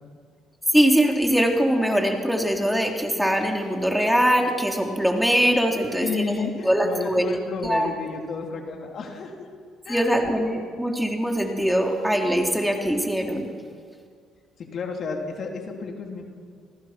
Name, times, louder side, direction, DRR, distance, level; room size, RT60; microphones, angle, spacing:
voice 1, 0.7-6.3 6.6-7.2 7.6-7.9 9.9-13.5, equal, ahead, 2 dB, 3.6 m, -22 dB
voice 2, 6.0-9.5 9.9-10.3 14.6-16.3, left 4 dB, 55° left, 2 dB, 3.5 m, -32 dB
28.0 x 20.0 x 6.1 m, 2.1 s
supercardioid pair, 70°, 0 cm